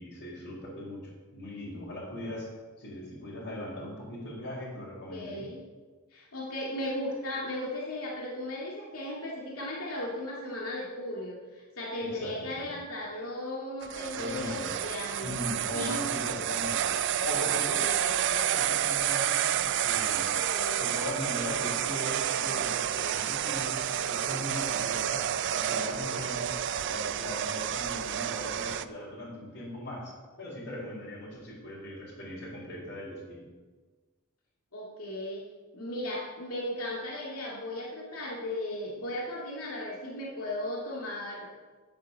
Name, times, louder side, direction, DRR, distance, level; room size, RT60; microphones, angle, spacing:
voice 1, 0.0-2.5 2.8-5.5 12.0-12.7 14.2-14.7 15.2-20.3 20.8-26.6 26.9-33.5, left 1 dB, 55° left, -9 dB, 4.1 m, -39 dB
voice 2, 5.1-5.6 6.1-15.4 15.7-16.1 17.8-18.0 20.3-20.8 34.7-35.5 35.7-41.6, left 1 dB, 90° left, -3 dB, 2.3 m, -36 dB
sound 1, 13.8-28.8, right 10 dB, 55° right, 0.4 m, -30 dB
9.8 x 8.5 x 6.7 m, 1.3 s
head